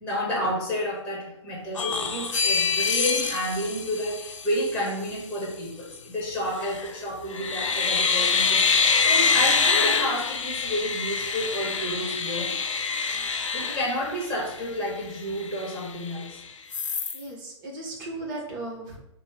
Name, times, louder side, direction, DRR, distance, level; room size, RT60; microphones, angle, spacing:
voice 1, 0.0-12.5 13.4-16.4, equal, 5° left, -4 dB, 1.3 m, -30 dB
sound 1, 1.7-4.8 6.6-6.9 7.3-14.6 15.0-15.1 15.4-16.3 16.7-17.2, left 5 dB, 85° left, 0.5 m, -25 dB
voice 2, 13.4-13.8 17.1-19.0, right 2 dB, 45° right, 0 dB, 1.1 m, -37 dB
5.1 x 2.2 x 3.3 m, 0.77 s
hypercardioid pair, 125°, 16 cm